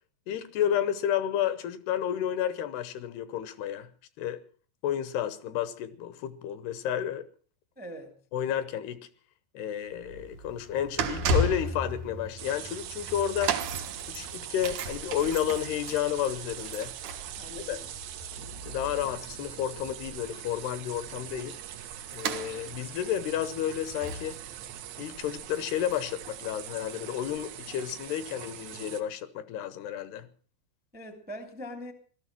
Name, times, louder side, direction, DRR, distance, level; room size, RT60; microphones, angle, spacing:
voice 1, 0.3-3.9 4.2-4.4 4.8-7.2 8.3-9.1 9.5-13.6 14.1-16.9 17.7-17.8 18.7-21.6 22.1-24.4 25.0-30.3, left 10 dB, 75° left, 2.8 m, -31 dB
voice 2, 7.7-8.2 17.4-17.9 30.9-31.9, equal, 5° right, 0.8 m, -42 dB
sound 1, 9.9-26.3 26.5-26.8 27.5-27.6, right 2 dB, 60° right, 2.1 m, -36 dB
sound 2, 12.4-29.0, right 11 dB, 80° right, 3.4 m, -42 dB
18.0 x 13.5 x 5.9 m
omnidirectional pair, 5.0 m